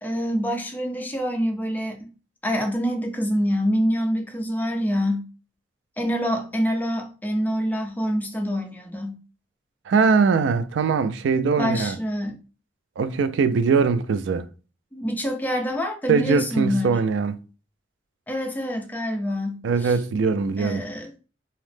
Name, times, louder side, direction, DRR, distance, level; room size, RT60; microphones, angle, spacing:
voice 1, 0.0-2.1 2.4-5.3 6.0-9.2 11.6-12.4 14.9-17.0 18.3-20.0 20.6-21.1, equal, 10° left, 0.5 m, -26 dB
voice 2, 9.9-12.0 13.0-14.5 16.1-17.4 19.6-20.9, right 5 dB, 70° right, 0.3 m, -21 dB
2.8 x 2.0 x 3.2 m
head